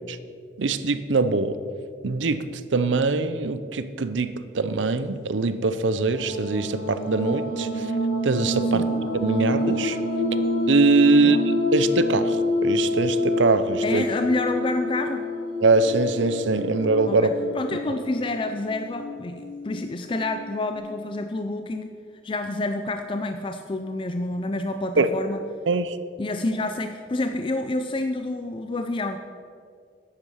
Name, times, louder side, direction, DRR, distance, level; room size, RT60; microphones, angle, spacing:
voice 1, 0.6-1.6 2.0-7.9 8.2-8.9 9.1-10.0 10.3-10.4 10.7-14.0 15.6-17.3 25.0-25.1 25.7-26.0, right 3 dB, 85° right, 12 dB, 0.6 m, -22 dB
sound 1, 5.9-20.8, left 1 dB, 80° left, 3.4 m, -28 dB
voice 2, 11.1-11.4 13.8-15.3 17.1-21.9 22.2-25.4 26.2-29.2, left 2 dB, 30° left, 6 dB, 0.4 m, -28 dB
10.5 x 8.6 x 6.3 m, 2.2 s
head